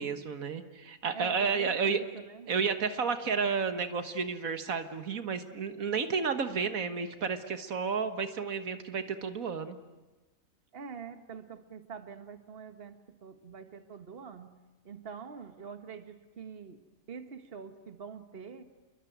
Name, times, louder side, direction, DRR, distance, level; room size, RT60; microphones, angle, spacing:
voice 1, 0.0-2.0 2.5-9.8, right 5 dB, 85° right, 9 dB, 1.9 m, -31 dB
voice 2, 1.1-2.5 10.7-14.5 14.8-16.8 17.1-18.6, right 6 dB, 45° right, 9 dB, 1.6 m, -45 dB
28.5 x 23.0 x 9.3 m, 1.1 s
omnidirectional pair, 1.4 m